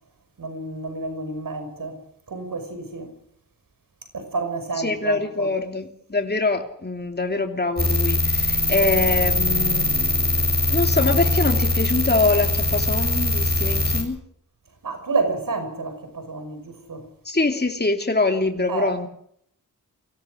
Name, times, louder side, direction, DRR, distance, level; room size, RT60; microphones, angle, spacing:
voice 1, 0.4-2.0 2.3-3.1 4.1-5.5 14.8-17.1 18.7-19.0, right 3 dB, 80° right, 5.9 m, -29 dB
voice 2, 4.8-10.4 10.7-14.2 17.2-19.1, left 3 dB, 30° left, 2.9 m, -24 dB
sound 1, 7.8-14.0, left 2 dB, 30° right, 7.4 m, -22 dB
24.5 x 17.0 x 6.5 m
cardioid pair, 55°, 33 cm